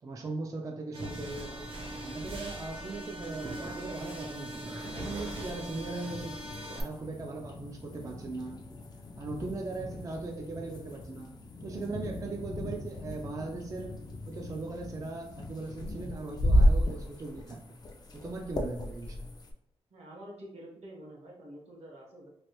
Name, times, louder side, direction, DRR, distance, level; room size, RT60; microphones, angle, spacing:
voice 1, 0.0-1.7 2.0-6.4 6.7-8.7 9.2-14.0 14.3-17.8 18.1-19.3, right 3 dB, 30° right, 2 dB, 0.3 m, -39 dB
sound 1, 0.9-6.8, right 1 dB, 50° right, 0.7 m, -40 dB
sound 2, 4.0-19.5, equal, 40° left, 0.4 m, -34 dB
voice 2, 19.9-22.3, right 1 dB, 75° right, -1 dB, 1.0 m, -48 dB
3.1 x 2.4 x 2.9 m, 0.74 s
wide cardioid pair, 120°, 11 cm